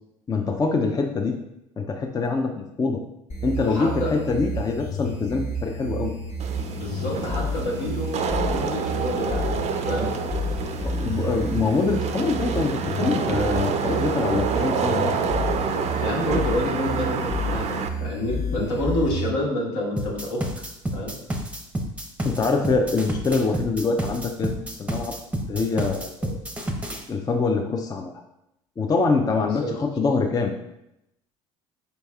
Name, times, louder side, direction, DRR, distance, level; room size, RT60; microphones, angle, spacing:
voice 1, 0.3-1.4 1.8-3.0 3.4-6.1 10.8-15.1 22.2-25.2 25.5-26.3 27.1-28.1 28.8-30.5, left 4 dB, 25° left, 3 dB, 0.4 m, -24 dB
sound 1, 3.3-19.3, equal, 45° left, 0.8 m, -30 dB
voice 2, 3.7-4.1 6.8-10.1 16.0-20.4 20.9-21.1 29.4-29.7, left 1 dB, 75° left, -3 dB, 1.3 m, -28 dB
Wind / Rain, 6.4-17.9, right 5 dB, 45° right, 0.5 m, -28 dB
sound 2, 20.0-27.0, right 1 dB, 10° right, 0.7 m, -30 dB
4.5 x 4.0 x 2.3 m, 0.84 s
hypercardioid pair, 70°, 16 cm